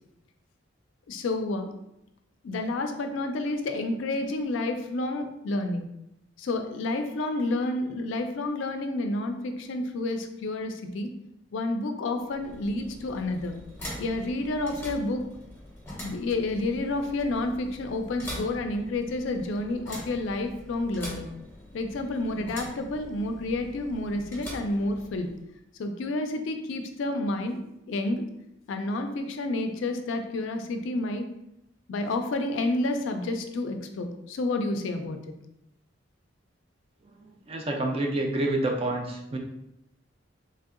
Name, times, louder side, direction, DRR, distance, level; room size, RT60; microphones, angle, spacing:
voice 1, 1.1-1.7 2.4-5.9 6.4-11.1 11.5-13.6 14.0-15.2 16.0-21.3 21.7-25.3 25.8-27.6 27.9-28.2 28.7-31.3 31.9-35.3, left 2 dB, 65° left, 6 dB, 0.3 m, -30 dB
sound 1, 12.2-25.5, equal, 10° left, 0.6 m, -43 dB
voice 2, 37.5-39.4, right 2 dB, 30° right, 2 dB, 0.3 m, -28 dB
3.2 x 2.6 x 2.4 m, 0.83 s
head